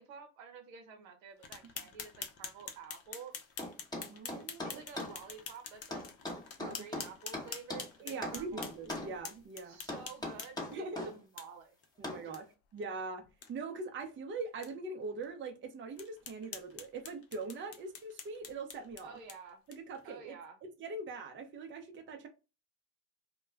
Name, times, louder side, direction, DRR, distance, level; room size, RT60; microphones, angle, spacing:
voice 1, 0.0-3.3 4.6-6.0 6.7-8.6 9.6-11.8 12.1-12.5 19.0-19.6 20.0-20.6, right 5 dB, 75° right, 0.8 m, -51 dB
sound 1, 1.4-10.8 11.4-11.5 11.8-11.9 12.3-12.4 12.8-12.9 13.3-13.5 14.0-14.1 14.6-14.7 15.2-15.3 16.0-20.0, left 7 dB, 35° left, 0.6 m, -47 dB
sound 2, 3.6-5.2 5.9-7.9 8.2-9.1 9.9-11.1 12.0-12.3, left 1 dB, 10° left, 0.9 m, -40 dB
voice 2, 4.0-4.8 6.6-6.9 8.0-9.8 10.7-11.1 12.0-12.5 12.7-13.2 13.5-19.2 19.7-20.4 20.8-22.3, right 3 dB, 30° right, 0.6 m, -42 dB
2.2 x 2.2 x 3.2 m
hypercardioid pair, 75°, 40 cm